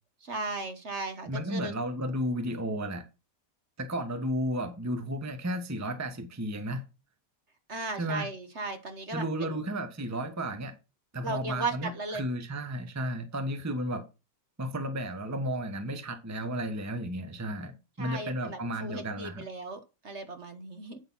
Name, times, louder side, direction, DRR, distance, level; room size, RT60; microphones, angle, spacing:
voice 1, 0.2-1.7 7.7-9.6 11.2-12.2 18.0-21.0, right 3 dB, 45° right, 1.4 m, -36 dB
voice 2, 1.3-3.0 3.8-6.8 8.0-8.3 9.1-10.7 11.1-14.0 14.6-19.4, right 1 dB, 10° right, 1.0 m, -33 dB
8.8 x 6.6 x 5.6 m
omnidirectional pair, 1.8 m